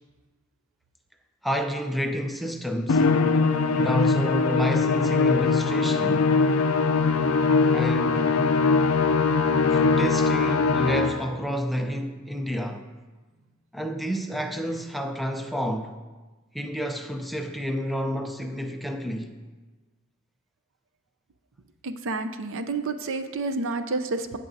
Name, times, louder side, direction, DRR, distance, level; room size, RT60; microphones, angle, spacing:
voice 1, 1.4-3.0 3.7-6.3 7.7-8.4 9.6-12.9 13.7-15.9 16.5-19.4, equal, ahead, 0.5 m, -29 dB
Musical instrument, 2.9-11.4, left 4 dB, 70° left, 0.4 m, -21 dB
voice 2, 21.8-24.4, right 3 dB, 65° right, 0.6 m, -29 dB
16.5 x 6.0 x 2.7 m
head